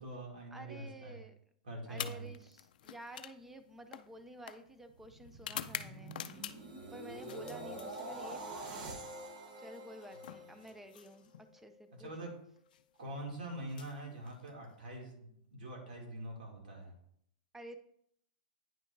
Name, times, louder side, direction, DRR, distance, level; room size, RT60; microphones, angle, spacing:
voice 1, 0.0-1.2 1.6-2.3 7.3-7.5 10.1-10.4 12.0-12.3 13.0-16.9, right 1 dB, 85° right, 0 dB, 2.5 m, -44 dB
voice 2, 0.5-1.3 1.9-6.1 6.9-9.0 9.6-12.3 17.5-17.8, right 1 dB, 5° right, 9 dB, 0.5 m, -51 dB
sound 1, 1.9-6.8 7.2-8.4 9.7-11.5 12.6-12.8 13.6-14.8, left 10 dB, 70° left, 0.4 m, -47 dB
sound 2, 4.9-11.1 11.6-11.9, right 1 dB, 55° right, 1.4 m, -46 dB
9.4 x 5.5 x 2.6 m, 0.71 s
hypercardioid pair, 150°, 5 cm